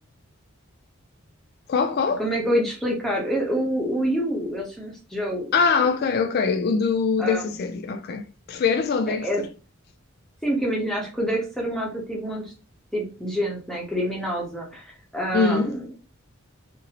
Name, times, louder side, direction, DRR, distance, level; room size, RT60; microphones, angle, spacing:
voice 1, 1.7-2.2 5.5-9.5 15.3-15.8, left 5 dB, 45° left, 0.3 m, -23 dB
voice 2, 2.2-5.9 7.2-7.4 9.2-9.4 10.4-12.5 12.9-14.8 15.1-15.9, equal, ahead, 0.8 m, -27 dB
2.8 x 2.6 x 2.8 m
head